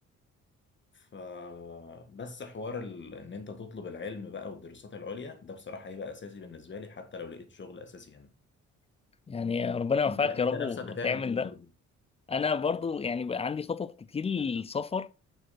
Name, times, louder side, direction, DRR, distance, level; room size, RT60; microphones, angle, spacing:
voice 1, 0.9-8.3 10.1-11.7, left 4 dB, 40° left, 1.7 m, -40 dB
voice 2, 9.3-10.8 11.0-11.5 12.3-15.1, left 5 dB, 20° left, 0.4 m, -30 dB
6.6 x 6.2 x 4.2 m
cardioid pair, 90°, 30 cm